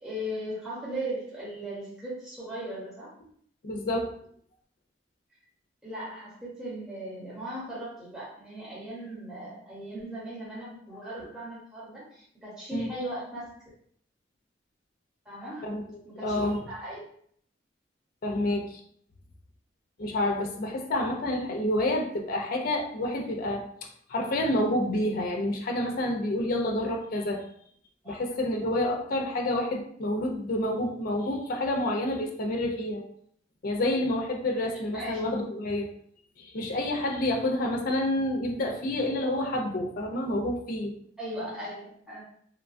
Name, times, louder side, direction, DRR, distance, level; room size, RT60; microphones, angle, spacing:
voice 1, 0.0-3.1 5.8-13.6 15.2-15.7 16.0-17.0 28.0-28.2 34.9-35.4 41.2-42.2, right 1 dB, 5° right, -9 dB, 0.9 m, -38 dB
voice 2, 3.6-4.1 12.7-12.9 15.6-15.8 16.2-16.6 18.2-18.8 20.0-23.6 24.1-27.4 28.1-33.0 33.6-35.9 36.4-40.9, left 1 dB, 55° left, 2 dB, 0.5 m, -28 dB
3.0 x 2.2 x 2.5 m, 0.62 s
head